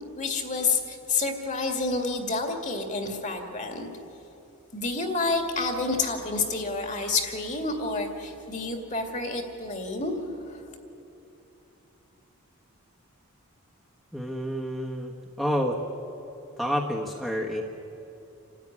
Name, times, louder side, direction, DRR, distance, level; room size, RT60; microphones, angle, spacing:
voice 1, 0.2-3.9 4.7-10.7, left 3 dB, 35° left, 4 dB, 2.2 m, -29 dB
voice 2, 14.1-15.8 16.6-17.6, equal, ahead, -2 dB, 1.3 m, -29 dB
27.0 x 13.5 x 9.9 m, 2.9 s
head